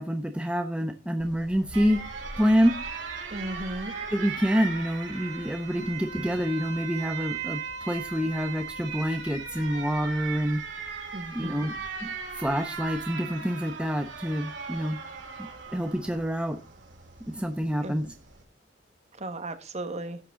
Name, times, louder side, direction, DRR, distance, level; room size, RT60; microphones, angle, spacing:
voice 1, 0.0-2.0 2.4-2.8 4.1-7.6 7.9-10.6 11.3-11.7 12.0-12.1 12.4-15.0 15.7-16.6 17.3-18.1, equal, 5° right, 5 dB, 0.9 m, -27 dB
Alarm, 1.2-18.4, right 5 dB, 75° right, 3.6 m, -38 dB
voice 2, 3.3-3.9 6.1-6.2 11.1-11.7 17.8-18.0 19.2-20.2, right 1 dB, 35° right, 9 dB, 1.6 m, -35 dB
12.0 x 9.1 x 3.8 m, 0.30 s
head